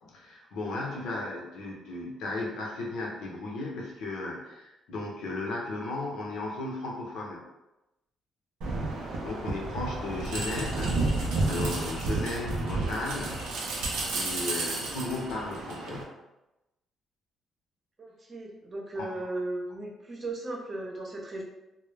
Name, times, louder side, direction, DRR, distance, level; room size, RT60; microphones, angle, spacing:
voice 1, 0.0-7.4 9.0-13.5 13.8-16.2 18.9-19.3, left 2 dB, 80° left, -2 dB, 0.6 m, -36 dB
sound 1, 8.6-16.0, right 2 dB, 90° right, 0.5 m, -31 dB
voice 2, 18.0-21.4, right 2 dB, 40° right, -2 dB, 0.7 m, -36 dB
2.1 x 2.0 x 3.2 m, 0.96 s
cardioid pair, 90°, 0 cm